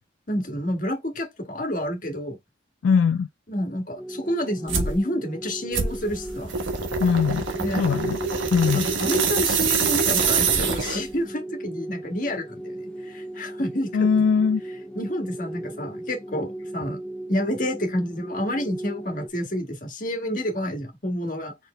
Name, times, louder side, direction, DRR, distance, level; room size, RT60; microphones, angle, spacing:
voice 1, 0.3-2.4 3.5-6.5 7.6-7.8 8.7-14.1 14.9-17.0 17.3-21.5, equal, 45° left, 1.5 m, -29 dB
voice 2, 2.8-3.3 7.0-7.4 7.8-8.2 8.5-8.9 13.9-14.6, left 6 dB, 75° left, 0.3 m, -20 dB
sound 1, 4.0-19.3, right 1 dB, 5° left, 0.5 m, -37 dB
sound 2, 4.7-5.0 5.7-11.2, right 5 dB, 90° right, 1.2 m, -25 dB
4.5 x 3.4 x 3.2 m
head